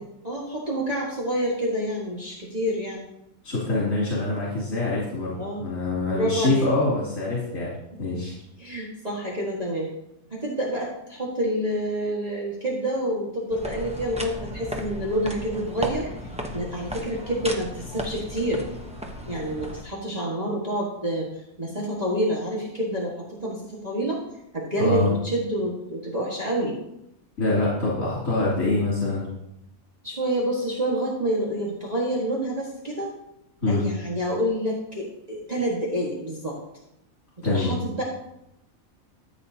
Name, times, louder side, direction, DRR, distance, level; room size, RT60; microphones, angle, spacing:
voice 1, 0.2-3.0 5.4-5.6 6.1-6.7 8.1-8.2 8.6-9.9 10.3-16.1 16.5-18.7 19.3-24.2 24.5-26.8 30.0-33.1 33.7-36.6 37.4-38.0, right 1 dB, 30° right, -6 dB, 1.8 m, -28 dB
voice 2, 3.4-7.7 8.0-8.3 24.8-25.1 27.4-29.3 33.6-33.8 37.4-37.7, left 2 dB, 70° left, -8 dB, 3.2 m, -25 dB
sound 1, 13.5-19.8, equal, 5° right, 0.7 m, -35 dB
13.5 x 8.2 x 2.8 m, 0.84 s
omnidirectional pair, 1.5 m